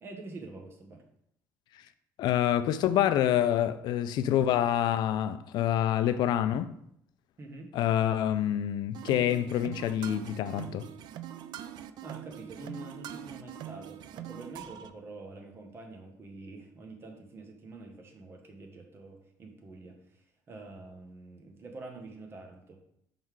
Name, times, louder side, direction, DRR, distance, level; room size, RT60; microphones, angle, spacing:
voice 1, 0.0-1.0 7.4-7.7 12.0-20.2 20.5-22.8, right 2 dB, 30° right, 1.1 m, -46 dB
voice 2, 2.2-6.8 7.7-10.9, left 11 dB, 75° left, 0.4 m, -27 dB
sound 1, 8.9-14.9, right 11 dB, 75° right, 0.4 m, -43 dB
5.3 x 3.8 x 4.6 m
cardioid pair, 155°, 8 cm